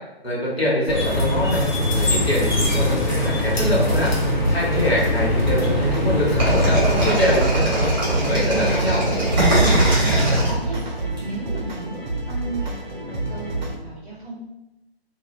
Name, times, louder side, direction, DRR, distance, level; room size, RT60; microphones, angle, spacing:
voice 1, 0.2-4.1 4.5-9.1, equal, 75° left, -4 dB, 1.2 m, -24 dB
sound 1, 0.9-7.1, left 1 dB, 45° left, 0.7 m, -22 dB
sound 2, 3.3-13.8, right 2 dB, 50° right, 0.6 m, -29 dB
sound 3, 6.4-11.2, right 1 dB, 20° right, 0.8 m, -20 dB
voice 2, 9.6-12.8 13.0-14.4, right 2 dB, 10° left, -15 dB, 0.4 m, -33 dB
2.3 x 2.2 x 3.1 m, 0.97 s
figure-of-eight pair, 145°, 31 cm